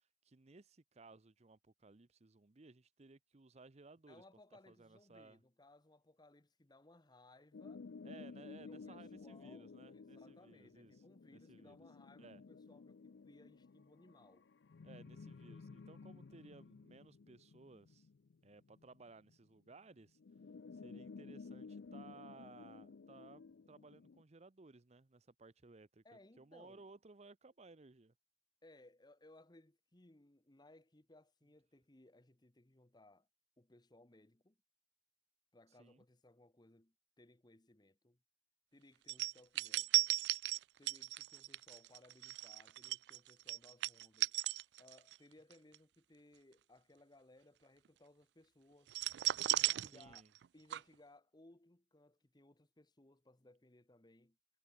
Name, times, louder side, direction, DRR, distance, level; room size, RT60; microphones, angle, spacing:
voice 1, 0.0-4.2 4.7-5.4 8.0-10.9 11.3-11.8 12.2-12.4 14.8-18.1 18.4-20.2 20.7-26.0 26.4-28.1 35.8-36.0 49.8-50.3, right 3 dB, 35° right, 0.7 m, -59 dB
voice 2, 4.1-7.9 8.6-14.4 26.0-26.8 28.6-33.3 33.6-34.6 35.5-38.2 38.7-40.1 40.8-44.3 44.8-48.9 49.5-50.2 50.5-54.4, left 2 dB, 25° left, 1.1 m, -64 dB
sound 1, 7.5-19.3 20.2-24.2, left 4 dB, 75° left, 0.5 m, -54 dB
sound 2, 39.1-45.2 45.5-45.8 48.9-50.5 50.7-50.8, right 17 dB, 70° right, 0.3 m, -36 dB
head